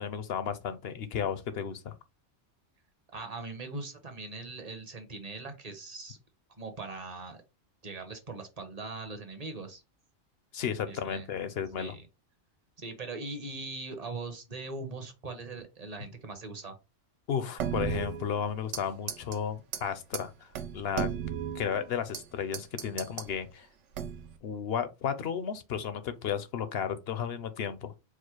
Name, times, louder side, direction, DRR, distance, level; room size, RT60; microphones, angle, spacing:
voice 1, 0.0-1.9 10.5-11.9 17.3-21.1 21.5-23.7 24.4-27.9, left 8 dB, 65° left, 0.8 m, -33 dB
voice 2, 3.1-6.2 6.6-7.4 7.8-9.8 10.9-11.3 11.8-12.0 12.8-16.8, right 3 dB, 35° right, 0.9 m, -40 dB
sound 1, 17.6-18.8 19.1-19.4 19.7-19.8 20.1-20.2 20.5-22.2 22.5-23.3 23.9-24.4, right 9 dB, 75° right, 1.0 m, -35 dB
4.8 x 2.1 x 4.5 m
omnidirectional pair, 1.2 m